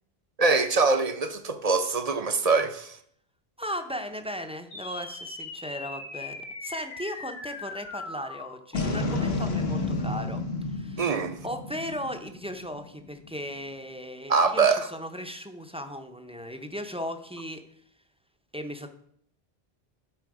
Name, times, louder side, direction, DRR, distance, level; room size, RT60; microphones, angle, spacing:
voice 1, 0.4-3.0 11.0-11.3 14.3-14.9, right 4 dB, 45° right, 0.6 m, -23 dB
voice 2, 3.6-10.4 10.7-11.0 11.4-17.6 18.5-18.9, equal, 5° right, 0.5 m, -37 dB
sound 1, 4.7-13.3, left 3 dB, 75° left, 1.4 m, -33 dB
12.0 x 4.3 x 4.8 m
omnidirectional pair, 1.0 m